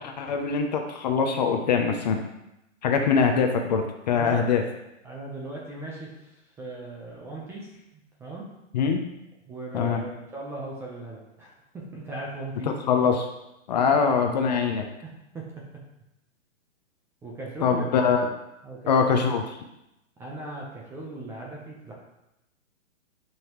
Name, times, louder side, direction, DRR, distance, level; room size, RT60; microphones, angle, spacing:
voice 1, 0.0-2.2 2.8-4.6 8.7-9.0 9.7-10.0 12.7-13.3 13.7-14.9 17.6-18.2 18.9-19.4, left 6 dB, 35° left, 4 dB, 0.7 m, -23 dB
voice 2, 4.1-4.5 5.0-8.5 9.5-12.8 13.9-14.0 15.0-15.6 17.2-17.9 18.6-19.1 20.2-21.9, right 2 dB, 5° right, -3 dB, 0.7 m, -38 dB
11.5 x 5.6 x 3.1 m, 0.89 s
hypercardioid pair, 155°, 39 cm